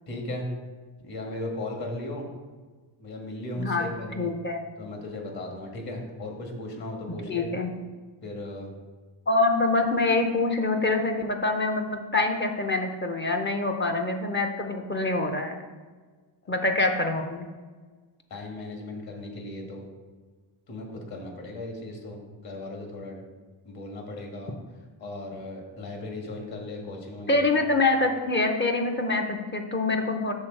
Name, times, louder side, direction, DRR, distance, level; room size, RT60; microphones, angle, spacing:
voice 1, 0.1-0.5 1.0-2.3 3.0-4.2 4.8-7.5 8.2-8.7 18.3-19.9 20.7-23.2 23.6-24.5 25.0-27.6, left 1 dB, 50° left, 1 dB, 1.7 m, -36 dB
voice 2, 3.6-3.9 4.2-4.7 7.2-7.7 9.3-15.5 16.5-17.5 27.3-30.3, left 2 dB, 25° left, 3 dB, 0.6 m, -25 dB
6.4 x 4.0 x 6.3 m, 1.4 s
cardioid pair, 165°, 47 cm